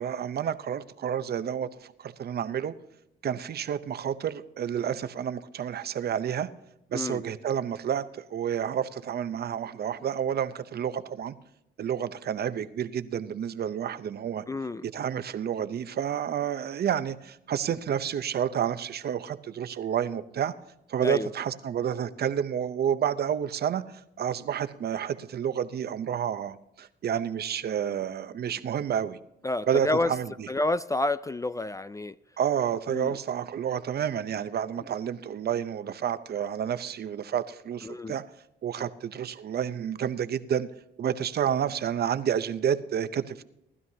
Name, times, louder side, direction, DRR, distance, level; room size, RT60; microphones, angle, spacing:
voice 1, 0.0-2.7 3.2-6.5 6.9-11.3 11.8-14.4 14.8-20.5 20.9-29.2 29.7-30.5 32.4-38.2 38.6-40.7 41.0-43.4, right 9 dB, 55° right, 0.7 m, -30 dB
voice 2, 6.9-7.2 14.5-14.8 21.0-21.3 29.4-30.1 30.5-32.1 32.9-33.1 37.8-38.2, left 2 dB, 15° left, 0.3 m, -29 dB
18.5 x 12.5 x 2.8 m
cardioid pair, 90°, 20 cm